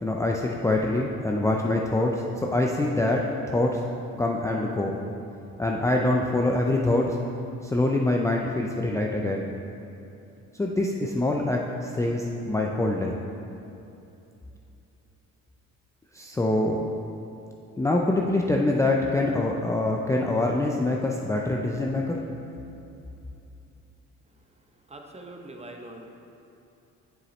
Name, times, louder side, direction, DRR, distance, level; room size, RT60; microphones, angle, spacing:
voice 1, 0.0-3.8 4.1-5.0 5.6-7.2 7.6-9.5 10.5-13.1 16.1-16.8 17.8-22.2, left 2 dB, 10° left, -1 dB, 0.4 m, -25 dB
voice 2, 24.9-26.1, right 2 dB, 20° right, 2 dB, 0.8 m, -42 dB
7.1 x 6.7 x 3.1 m, 2.8 s
cardioid pair, 90°, 30 cm